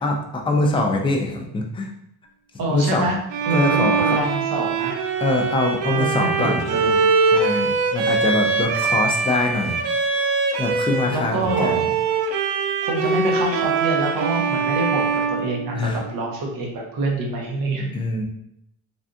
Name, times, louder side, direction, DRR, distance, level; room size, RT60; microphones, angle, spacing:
voice 1, 0.0-1.9 2.7-3.1 3.5-4.2 5.2-6.6 7.3-9.8 10.6-11.8 15.8-16.0 17.9-18.2, left 2 dB, 15° left, 1 dB, 0.4 m, -23 dB
voice 2, 2.6-3.2 3.4-5.0 5.9-7.1 11.1-11.8 12.8-17.9, right 2 dB, 50° right, 0 dB, 1.0 m, -26 dB
Bowed string instrument, 3.3-11.2 11.4-16.2, right 4 dB, 80° right, 0.6 m, -22 dB
3.3 x 2.4 x 2.6 m, 0.75 s
cardioid pair, 110°, 43 cm